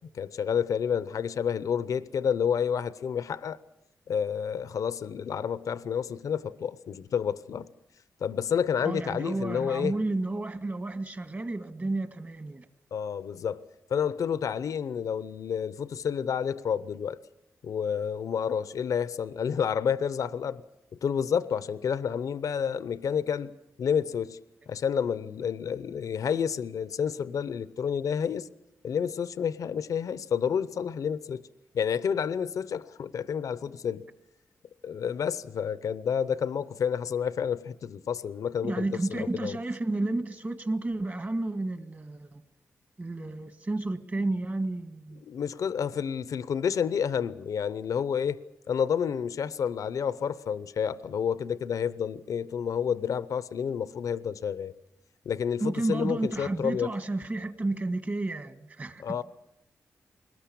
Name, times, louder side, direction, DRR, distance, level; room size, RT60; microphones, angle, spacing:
voice 1, 0.1-3.6 4.1-7.7 8.2-10.0 12.9-17.2 17.6-20.6 21.0-23.5 23.8-24.4 24.7-28.5 28.8-31.4 31.7-34.0 34.8-39.6 45.3-48.4 48.7-54.7 55.3-56.9 59.0-59.2, left 7 dB, 80° left, 0.8 m, -29 dB
voice 2, 8.8-12.7 24.6-24.7 38.6-42.4 43.0-45.2 55.6-59.2, right 2 dB, 35° right, 1.6 m, -31 dB
21.5 x 19.5 x 8.6 m
wide cardioid pair, 95°, 6 cm